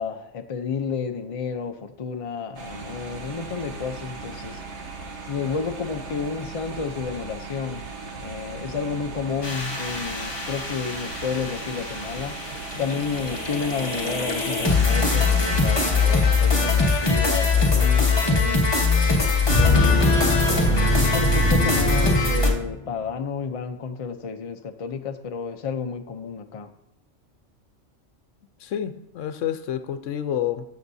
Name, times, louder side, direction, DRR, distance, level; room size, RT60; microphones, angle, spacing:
voice 1, 0.0-4.6 5.3-7.8 8.2-12.4 12.8-18.6 19.5-26.7, left 5 dB, 40° left, 6 dB, 0.5 m, -31 dB
sound 1, 2.6-16.7, right 4 dB, 70° right, 1.3 m, -37 dB
sound 2, 9.4-22.5, left 3 dB, 20° left, 1.2 m, -22 dB
sound 3, 19.5-23.0, left 2 dB, 15° right, 1.2 m, -23 dB
voice 2, 28.6-30.6, left 10 dB, 80° left, 10 dB, 1.0 m, -28 dB
13.0 x 7.0 x 2.7 m, 0.78 s
omnidirectional pair, 1.3 m